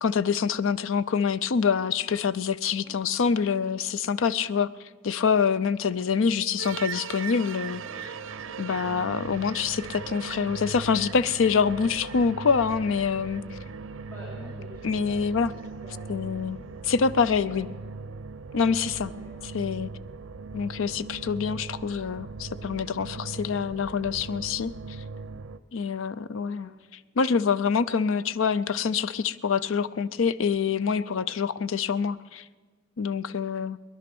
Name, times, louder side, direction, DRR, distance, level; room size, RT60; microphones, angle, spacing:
voice 1, 0.0-4.7 5.0-8.1 8.6-13.6 14.8-15.5 16.1-16.6 16.8-17.7 18.5-19.1 19.5-19.9 20.5-24.7 25.7-26.7 27.2-32.4 33.0-33.8, left 6 dB, 80° left, 16 dB, 0.5 m, -26 dB
voice 2, 2.8-3.5 13.8-17.8 19.0-19.2 26.4-26.7 33.3-33.6, equal, 10° left, -7 dB, 3.7 m, -49 dB
sound 1, 6.6-25.6, right 4 dB, 75° right, 0.6 m, -39 dB
20.5 x 11.0 x 6.1 m, 1.5 s
head